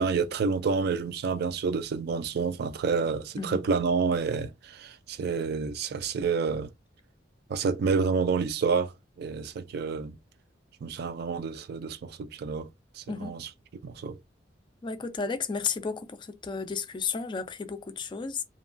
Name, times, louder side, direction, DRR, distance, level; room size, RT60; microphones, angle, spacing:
voice 1, 0.0-6.7 7.5-8.9 9.2-10.1 10.8-12.7 13.0-13.5 13.8-14.2, right 5 dB, 60° right, 0.4 m, -29 dB
voice 2, 14.8-18.4, left 5 dB, 25° left, 0.3 m, -33 dB
2.8 x 2.2 x 2.4 m
head